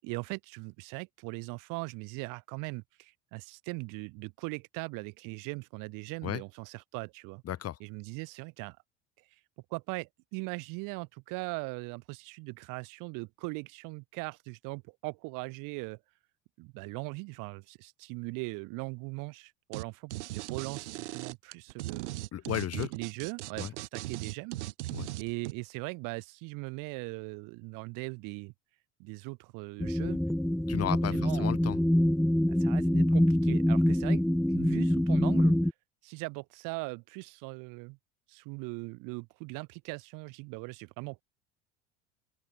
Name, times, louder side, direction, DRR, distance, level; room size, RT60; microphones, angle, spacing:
voice 1, 0.0-7.4 7.8-8.8 9.7-16.0 16.6-22.2 22.7-24.6 25.2-28.5 29.0-30.2 31.1-31.5 32.5-34.2 34.5-35.6 36.0-38.0 38.3-41.2, right 28 dB, 65° right, 5.8 m, -40 dB
voice 2, 7.4-7.8 22.3-22.9 23.6-23.7 24.9-25.1 30.7-31.8, left 11 dB, 45° left, 4.0 m, -34 dB
sound 1, 19.7-19.8 20.1-25.5, right 18 dB, 80° right, 1.9 m, -38 dB
sound 2, 29.8-35.7, left 1 dB, ahead, 0.4 m, -25 dB
open air
hypercardioid pair, 85°, 34 cm